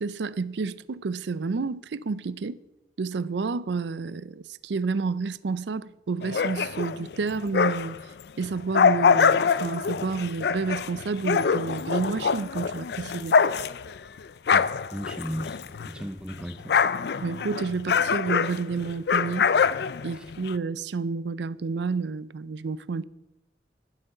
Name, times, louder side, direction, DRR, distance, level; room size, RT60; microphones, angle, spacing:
voice 1, 0.0-2.6 3.0-8.0 8.4-13.4 17.2-19.5 20.0-23.0, right 4 dB, 75° right, 0.5 m, -30 dB
sound 1, 6.2-8.0 8.4-16.0 16.3-20.5, left 6 dB, 65° left, 0.4 m, -24 dB
voice 2, 14.5-16.8 20.1-20.2, equal, 5° right, 0.6 m, -36 dB
11.5 x 7.4 x 6.6 m
head